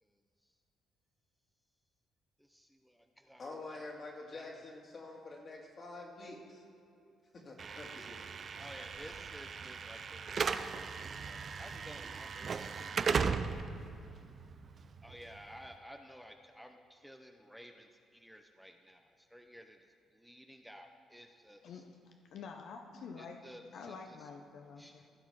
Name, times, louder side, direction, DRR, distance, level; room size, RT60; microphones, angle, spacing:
voice 1, 0.0-0.5 2.4-3.5 4.3-4.7 8.6-13.2 15.0-19.0 19.3-19.8 20.2-21.8 23.2-24.3 24.8-25.1, equal, ahead, 4 dB, 0.6 m, -54 dB
voice 2, 3.4-6.6 7.4-8.4, left 2 dB, 40° left, 0 dB, 2.1 m, -47 dB
Slam / Alarm, 7.6-15.7, right 5 dB, 45° right, 0.4 m, -37 dB
voice 3, 22.3-23.4 23.7-25.1, left 5 dB, 75° left, 4 dB, 0.6 m, -47 dB
15.5 x 6.1 x 4.7 m, 2.6 s
cardioid pair, 90°, 0 cm